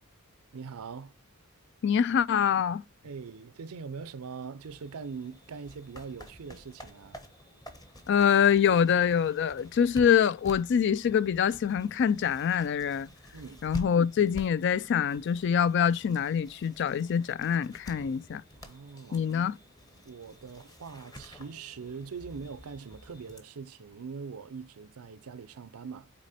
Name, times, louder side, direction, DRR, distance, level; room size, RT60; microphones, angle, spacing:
voice 1, 0.5-1.1 3.0-7.2 13.3-13.6 18.6-19.2 20.0-26.1, right 5 dB, 90° right, 0.5 m, -42 dB
voice 2, 1.8-2.8 8.1-13.1 13.6-18.4 19.1-19.6, left 8 dB, 55° left, 0.3 m, -25 dB
sound 1, 4.6-23.4, equal, 15° left, 1.0 m, -49 dB
6.2 x 4.2 x 4.1 m
head